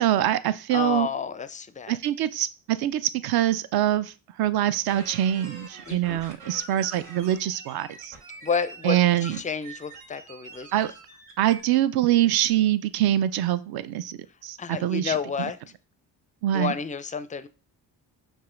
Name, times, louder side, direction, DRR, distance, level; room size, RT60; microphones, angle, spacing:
voice 1, 0.0-1.1 1.9-8.2 8.8-9.4 10.7-10.9 11.4-15.2 16.4-16.7, right 12 dB, 55° right, 15 dB, 0.5 m, -24 dB
voice 2, 0.7-2.0 5.9-6.2 8.4-10.7 14.6-15.6 16.5-17.5, left 6 dB, 20° left, 13 dB, 0.4 m, -30 dB
sound 1, 4.9-11.6, right 4 dB, 85° right, 2.1 m, -45 dB
5.4 x 2.4 x 3.7 m, 0.34 s
supercardioid pair, 55°, 46 cm